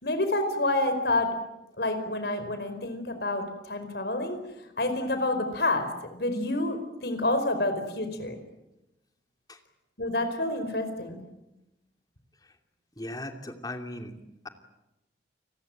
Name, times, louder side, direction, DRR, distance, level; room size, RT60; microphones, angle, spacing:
voice 1, 0.0-1.4 1.8-4.4 4.8-8.4 10.0-11.2, left 2 dB, 65° left, 8 dB, 4.8 m, -28 dB
voice 2, 13.0-14.2, left 1 dB, 20° left, 6 dB, 2.7 m, -38 dB
30.0 x 20.0 x 8.9 m, 0.93 s
head